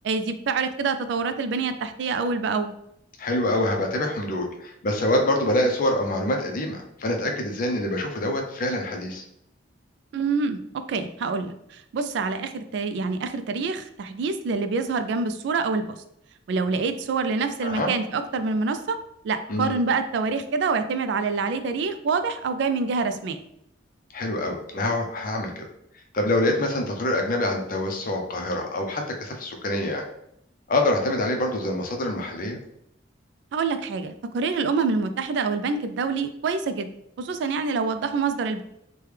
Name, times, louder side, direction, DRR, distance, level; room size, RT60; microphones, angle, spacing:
voice 1, 0.0-2.7 10.1-16.0 16.5-19.0 19.2-23.4 33.5-36.9 37.2-38.6, right 4 dB, 70° right, 9 dB, 0.3 m, -26 dB
voice 2, 3.2-9.2 17.6-17.9 19.5-19.7 24.1-25.6 26.1-30.0 30.7-32.6, left 1 dB, 50° left, 3 dB, 0.5 m, -25 dB
3.2 x 2.2 x 3.2 m, 0.76 s
head